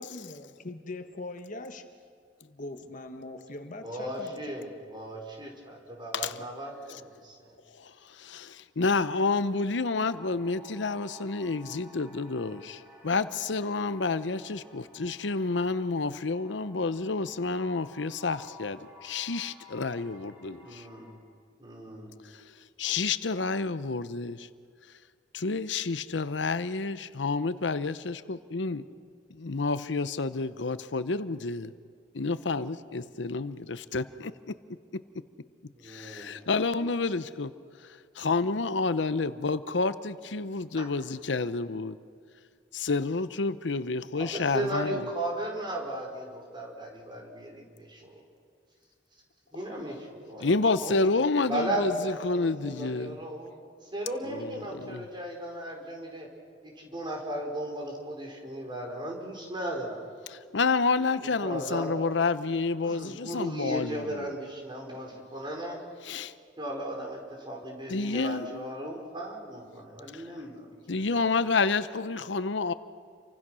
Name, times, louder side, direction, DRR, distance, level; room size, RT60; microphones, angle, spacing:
voice 1, 0.0-1.8 2.4-4.4, left 2 dB, 45° left, 6 dB, 1.5 m, -41 dB
voice 2, 3.8-7.0 20.6-21.2 21.6-22.1 35.7-36.4 40.8-40.9 44.1-48.2 49.5-50.5 50.8-51.0 51.5-53.5 53.8-56.3 56.6-60.0 61.2-62.0 62.8-65.8 66.6-71.3, right 1 dB, 25° right, 1 dB, 4.8 m, -36 dB
voice 3, 7.8-20.8 22.8-24.5 25.3-28.9 29.3-31.7 32.1-34.3 34.9-35.0 35.8-37.5 37.8-37.9 38.2-42.0 42.7-45.0 50.4-51.9 52.2-53.2 54.4-54.5 54.8-55.0 60.5-64.3 66.0-66.3 67.9-68.7 70.1-70.2 70.9-72.7, left 3 dB, 80° left, 13 dB, 0.8 m, -29 dB
sound 1, 9.7-21.1, equal, 10° right, 6.6 m, -53 dB
30.0 x 24.5 x 6.3 m, 2.2 s
head